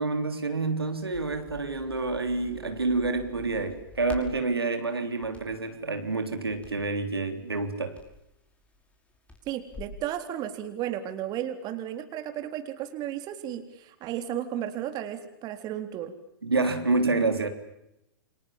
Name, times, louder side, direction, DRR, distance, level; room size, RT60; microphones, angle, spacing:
voice 1, 0.0-8.0 16.4-17.5, right 3 dB, 85° right, 7 dB, 3.7 m, -28 dB
Crackle, 0.8-10.0, left 3 dB, 10° left, 6.0 m, -48 dB
voice 2, 9.5-16.1, right 11 dB, 30° right, 8 dB, 3.8 m, -34 dB
29.0 x 26.5 x 7.4 m, 0.86 s
figure-of-eight pair, 105°, 12 cm